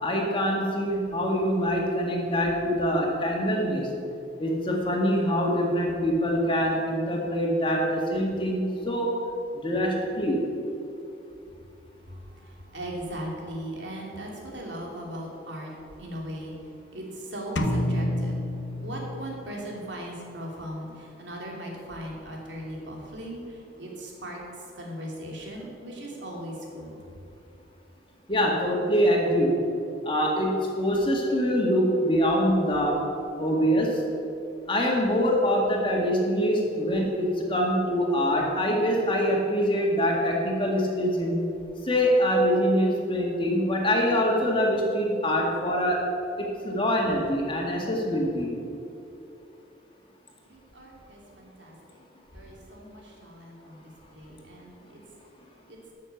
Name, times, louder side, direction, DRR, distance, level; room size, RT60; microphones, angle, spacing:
voice 1, 0.0-3.9 4.4-9.1 9.5-10.4 28.3-29.6 30.0-33.0 33.4-34.0 34.7-41.4 41.8-46.0 46.4-48.5, equal, 30° left, -1 dB, 1.9 m, -24 dB
voice 2, 12.7-15.7 16.0-16.5 16.9-18.4 18.8-24.4 24.8-27.0 50.5-51.7 52.3-55.0 55.7-55.8, right 1 dB, 80° right, -1 dB, 2.7 m, -38 dB
sound 1, 17.6-19.5, left 1 dB, 85° left, 0.9 m, -28 dB
13.0 x 6.7 x 7.1 m, 2.7 s
head